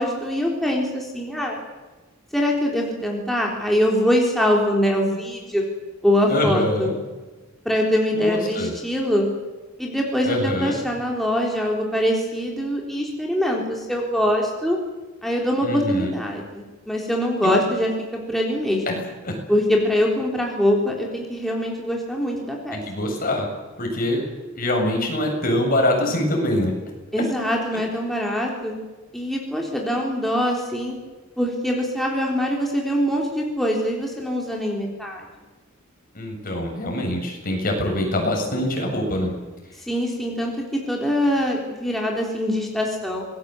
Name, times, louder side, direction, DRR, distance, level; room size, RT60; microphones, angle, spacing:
voice 1, 0.0-1.6 2.3-5.6 6.0-6.9 7.7-9.3 9.8-14.8 15.2-19.0 19.5-22.8 27.1-28.8 29.1-30.9 31.4-35.3 39.8-43.3, equal, ahead, -2 dB, 3.8 m, -23 dB
voice 2, 6.3-7.0 8.1-8.8 10.2-10.8 15.6-16.1 17.4-17.6 18.9-19.0 19.2-19.4 22.7-23.5 23.8-24.2 24.5-26.7 36.1-39.3, left 1 dB, 45° left, 2 dB, 7.1 m, -24 dB
27.0 x 20.5 x 8.0 m, 1.2 s
head